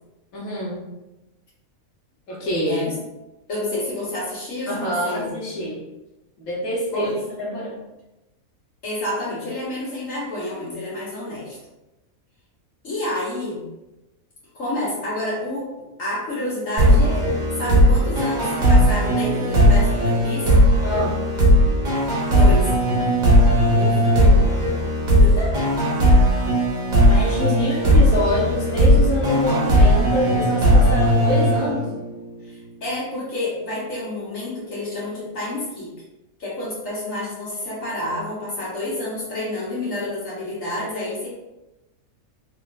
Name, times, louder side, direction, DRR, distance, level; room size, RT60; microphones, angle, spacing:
voice 1, 0.3-0.8 2.3-2.9 4.7-5.8 6.4-7.1 7.4-7.8 20.8-21.2 23.7-24.8 27.1-31.9, equal, 80° left, -5 dB, 1.5 m, -26 dB
voice 2, 3.5-5.4 6.9-7.1 8.8-11.6 12.8-13.6 14.5-15.7 16.0-17.3 17.6-20.5 22.3-22.7 25.2-25.5 27.5-27.9 32.4-35.9 36.4-41.3, left 1 dB, 65° left, -8 dB, 1.9 m, -29 dB
sound 1, 16.8-32.2, equal, 40° right, 0.8 m, -17 dB
3.5 x 3.1 x 2.5 m, 0.99 s
omnidirectional pair, 1.5 m